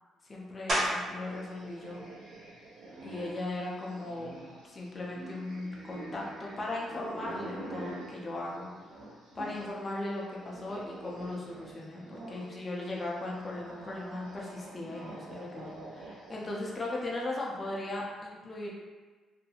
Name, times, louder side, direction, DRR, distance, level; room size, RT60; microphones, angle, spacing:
voice 1, 0.2-2.0 3.0-4.3 4.6-8.7 9.3-18.7, left 2 dB, 30° left, -3 dB, 0.6 m, -38 dB
sound 1, 0.7-1.3 1.8-6.3 6.8-12.0 12.2-17.9, equal, 55° right, 1.1 m, -41 dB
sound 2, 1.0-9.8 10.1-16.9, right 2 dB, 80° right, 0.6 m, -46 dB
2.6 x 2.6 x 2.3 m, 1.3 s
cardioid pair, 90°, 0 cm